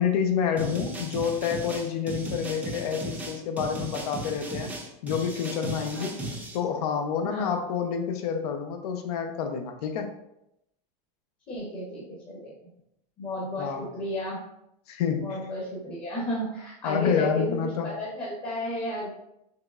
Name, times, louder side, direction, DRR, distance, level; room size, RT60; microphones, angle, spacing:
voice 1, 0.0-4.7 5.0-6.1 6.5-10.1 13.6-13.8 14.9-15.4 16.8-17.9, left 7 dB, 75° left, 5 dB, 0.7 m, -28 dB
sound 1, 0.6-6.6, right 1 dB, 5° right, 0.5 m, -36 dB
voice 2, 7.2-7.6 11.5-12.5 13.2-14.4 15.2-19.1, left 1 dB, 25° left, -5 dB, 0.9 m, -33 dB
5.6 x 3.1 x 2.4 m, 0.82 s
supercardioid pair, 165°, 20 cm